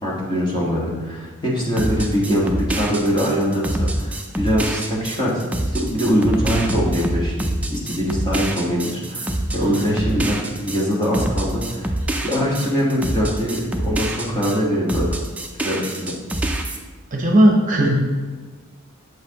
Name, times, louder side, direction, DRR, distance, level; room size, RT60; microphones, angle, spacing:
voice 1, 0.0-11.9 12.2-15.1 15.6-16.2, equal, 20° left, -4 dB, 1.3 m, -22 dB
sound 1, 1.8-14.6 14.9-16.8, right 1 dB, 5° right, 0.4 m, -25 dB
voice 2, 9.5-10.0 17.1-18.0, right 1 dB, 35° right, 0 dB, 0.8 m, -17 dB
7.6 x 5.8 x 2.9 m, 1.4 s
head